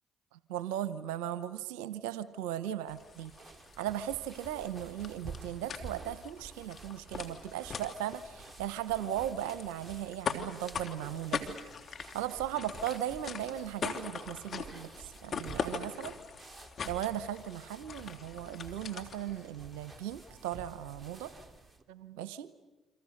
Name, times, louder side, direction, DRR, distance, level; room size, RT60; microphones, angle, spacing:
voice 1, 0.3-3.3 3.8-11.6 12.1-16.1 16.8-21.3 21.9-22.5, right 11 dB, 80° right, 15 dB, 0.9 m, -37 dB
sound 1, 2.9-19.4, left 6 dB, 55° left, 2.8 m, -42 dB
sound 2, 2.9-21.8, right 4 dB, 25° right, 2.8 m, -51 dB
sound 3, 15.2-21.0, left 3 dB, 20° left, 5.8 m, -59 dB
29.0 x 25.5 x 6.6 m, 1.1 s
hypercardioid pair, 55°, 0 cm